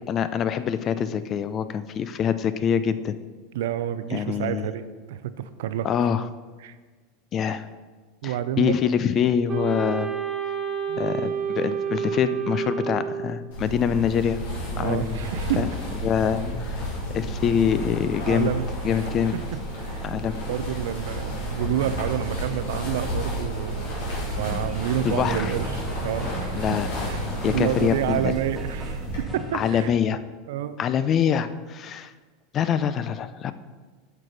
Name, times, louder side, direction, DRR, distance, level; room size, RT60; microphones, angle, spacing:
voice 1, 0.1-3.2 4.1-4.7 5.8-6.3 7.3-7.7 8.2-10.1 11.0-14.4 14.8-15.3 15.6-15.7 16.0-16.8 17.1-18.5 18.8-19.3 20.0-20.4 25.0-25.5 26.6-26.9 27.4-28.3 29.5-30.2 30.8-32.1 32.5-33.5, left 8 dB, 40° left, 13 dB, 0.5 m, -25 dB
voice 2, 3.5-5.9 6.6-6.7 7.4-7.5 8.2-8.8 10.9-11.0 14.7-15.6 18.2-19.1 19.3-20.1 20.5-24.0 24.4-26.7 27.0-29.1 29.5-29.9 30.5-30.8, right 11 dB, 70° right, 12 dB, 0.5 m, -29 dB
Wind instrument woodwind instrument, 9.5-13.5, right 7 dB, 35° right, 1.0 m, -29 dB
sound 1, 13.5-29.2, equal, 75° left, 2.7 m, -31 dB
sound 2, 24.3-29.9, equal, ahead, 1.9 m, -36 dB
8.9 x 6.1 x 4.0 m, 1.4 s
hypercardioid pair, 90°, 0 cm